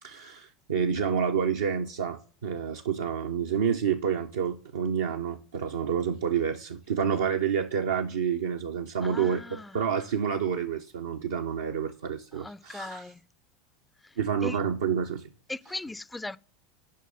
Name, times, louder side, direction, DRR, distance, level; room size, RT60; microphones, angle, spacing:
voice 1, 0.0-9.4 9.7-13.1 14.2-15.3, right 7 dB, 70° right, 0.5 m, -29 dB
voice 2, 9.0-9.7 12.3-13.2 14.0-14.1 14.4-14.6 15.5-16.4, left 2 dB, 10° left, 0.4 m, -38 dB
6.5 x 5.3 x 6.5 m
figure-of-eight pair, 80°, 0 cm